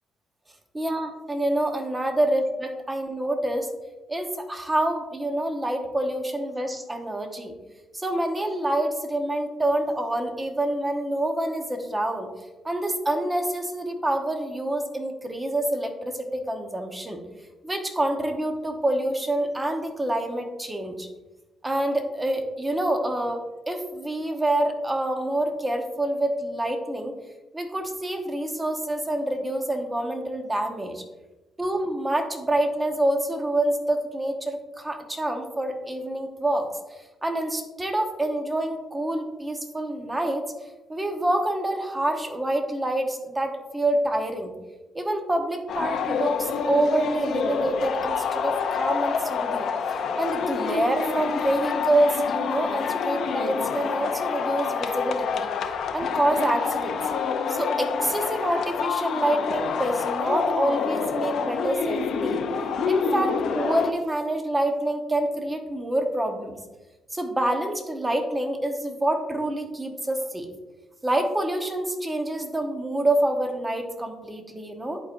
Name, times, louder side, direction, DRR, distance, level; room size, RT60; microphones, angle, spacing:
voice 1, 0.7-2.4 2.9-3.6 4.1-7.5 7.9-12.3 12.6-17.2 17.6-21.1 21.6-27.1 27.5-31.0 31.6-40.4 40.9-44.5 44.9-49.7 50.2-55.5 55.9-57.0 57.5-62.4 62.8-66.5 67.1-70.5 71.0-75.0, right 1 dB, 15° right, 4 dB, 1.1 m, -27 dB
sound 1, 45.7-63.9, left 6 dB, 70° left, 0.6 m, -27 dB
11.0 x 4.5 x 2.6 m, 1.1 s
cardioid pair, 90°, 0 cm